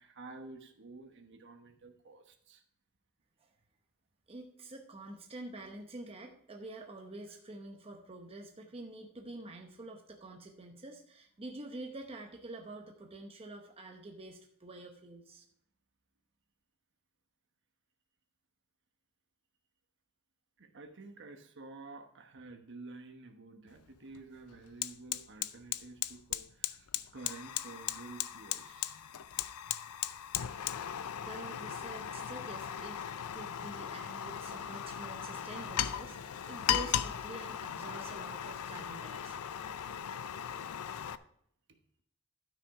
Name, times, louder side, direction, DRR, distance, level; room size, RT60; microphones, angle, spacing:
voice 1, 0.0-2.6 20.6-29.1 36.1-36.2 36.6-36.7 37.9-38.0 40.6-40.7, right 3 dB, 55° right, 6 dB, 1.1 m, -51 dB
voice 2, 4.3-15.4 31.2-39.5, right 2 dB, 25° right, 3 dB, 0.8 m, -47 dB
Fire, 23.7-23.8 24.1-41.2, left 10 dB, 75° left, 0.5 m, -37 dB
12.5 x 6.2 x 4.8 m, 0.70 s
head